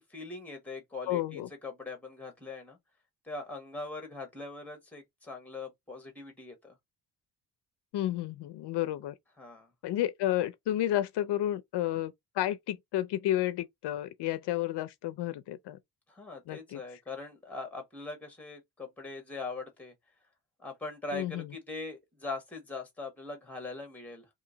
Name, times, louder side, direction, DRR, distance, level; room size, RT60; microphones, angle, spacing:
voice 1, 0.1-2.8 3.2-6.7 9.4-9.7 16.1-19.9 20.6-24.3, left 3 dB, 5° left, 1.1 m, -41 dB
voice 2, 1.1-1.5 7.9-9.1 9.8-15.8 16.5-16.8 21.1-21.5, left 13 dB, 75° left, 0.5 m, -31 dB
2.8 x 2.8 x 3.8 m
wide cardioid pair, 175°, 41 cm